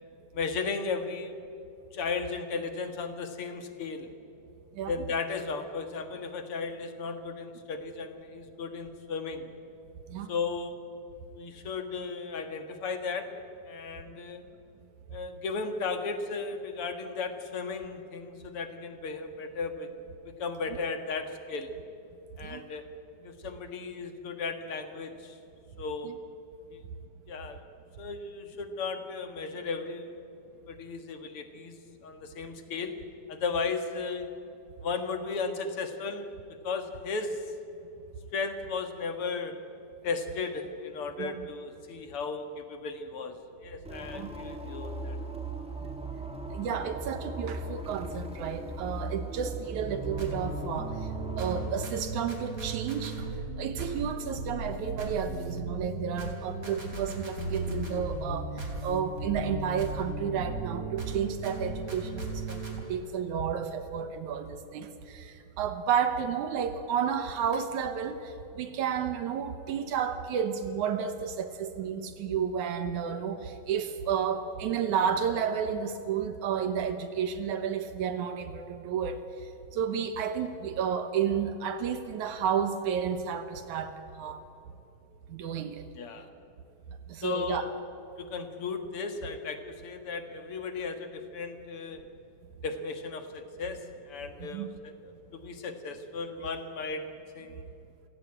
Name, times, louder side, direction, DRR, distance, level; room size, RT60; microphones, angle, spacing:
voice 1, 0.3-1.4 1.9-4.1 4.9-9.5 10.3-10.8 11.4-13.3 13.6-14.4 15.1-19.9 20.4-21.7 22.4-22.8 23.2-25.4 25.8-26.2 26.7-26.8 27.3-27.6 28.0-30.3 30.7-31.8 32.0-33.0 33.3-34.3 34.8-36.3 36.6-37.4 38.3-39.6 40.0-43.4 43.6-45.2 86.0-86.3 87.2-87.7 88.2-92.0 92.6-97.0 97.3-97.7, left 4 dB, 50° left, 7 dB, 2.4 m, -35 dB
sound 1, 43.8-51.8, right 2 dB, ahead, 1.6 m, -38 dB
voice 2, 46.5-51.1 51.4-53.3 53.6-84.4 85.3-85.8 87.1-87.7 94.4-94.7, right 7 dB, 80° right, 9 dB, 2.6 m, -31 dB
sound 2, 50.0-62.8, right 2 dB, 30° right, 3.6 m, -36 dB
29.5 x 16.5 x 8.7 m, 2.7 s
omnidirectional pair, 3.4 m